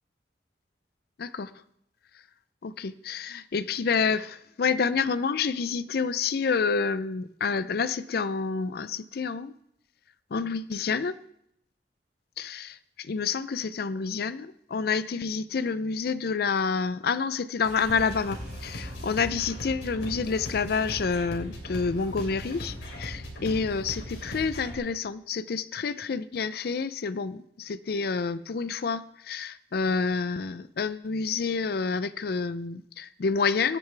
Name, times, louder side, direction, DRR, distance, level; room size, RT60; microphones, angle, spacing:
voice 1, 1.2-1.5 2.6-9.5 10.3-11.1 12.4-33.8, left 5 dB, 60° left, 15 dB, 0.4 m, -28 dB
sound 1, 17.6-23.8, right 1 dB, 40° right, 1.5 m, -48 dB
sound 2, 17.9-24.7, equal, 90° left, 3.4 m, -39 dB
23.0 x 8.9 x 3.3 m, 0.74 s
head